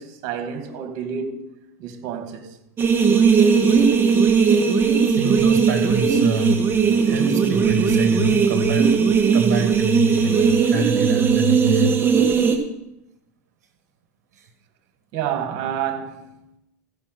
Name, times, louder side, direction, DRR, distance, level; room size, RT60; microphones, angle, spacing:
voice 1, 0.0-1.5 1.8-2.6 15.1-16.5, right 8 dB, 55° right, 2.1 m, -29 dB
sound 1, 2.8-12.6, right 6 dB, 25° right, 1.9 m, -18 dB
voice 2, 5.1-6.6 7.0-8.9 9.3-12.0 14.3-14.5, right 3 dB, 75° right, 1.4 m, -26 dB
14.5 x 5.8 x 6.1 m
hypercardioid pair, 105°, 9 cm